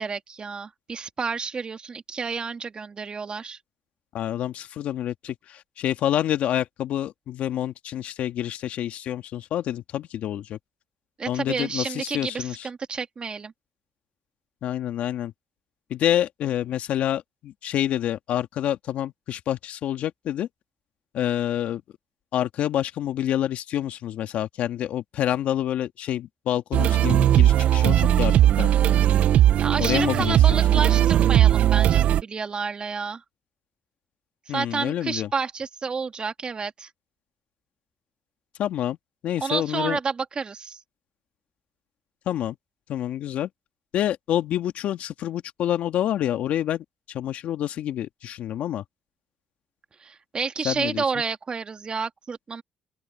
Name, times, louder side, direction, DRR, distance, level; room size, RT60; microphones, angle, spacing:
voice 1, 0.0-3.6 11.2-13.5 29.6-33.2 34.5-36.9 39.4-40.8 50.0-52.6, right 5 dB, 40° right, 2.5 m, -30 dB
voice 2, 4.1-10.6 11.3-12.7 14.6-15.3 15.9-20.5 21.1-21.8 22.3-29.0 29.8-30.8 34.5-35.3 38.6-39.0 39.2-40.0 42.3-42.6 42.9-43.5 43.9-48.8 50.6-51.0, left 11 dB, 75° left, 1.9 m, -27 dB
sound 1, 26.7-32.2, right 11 dB, 70° right, 0.6 m, -18 dB
open air
supercardioid pair, 60°, 2 cm